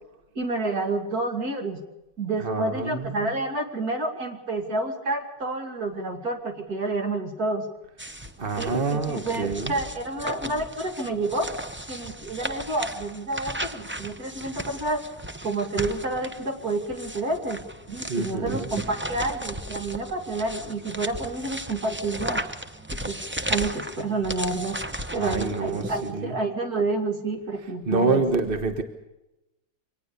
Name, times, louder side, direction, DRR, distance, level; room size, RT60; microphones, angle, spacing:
voice 1, 0.3-1.8 2.2-7.7 8.6-11.5 11.9-15.0 15.4-17.6 17.9-22.4 22.9-23.2 23.5-24.8 25.1-28.2, right 2 dB, 55° right, 5 dB, 3.0 m, -29 dB
voice 2, 2.4-3.3 8.4-9.7 18.1-18.7 25.1-26.4 27.9-28.8, right 4 dB, 30° right, 7 dB, 1.4 m, -27 dB
sound 1, 8.0-26.1, right 1 dB, 15° right, 0.5 m, -35 dB
24.5 x 19.0 x 6.8 m, 0.93 s
omnidirectional pair, 1.9 m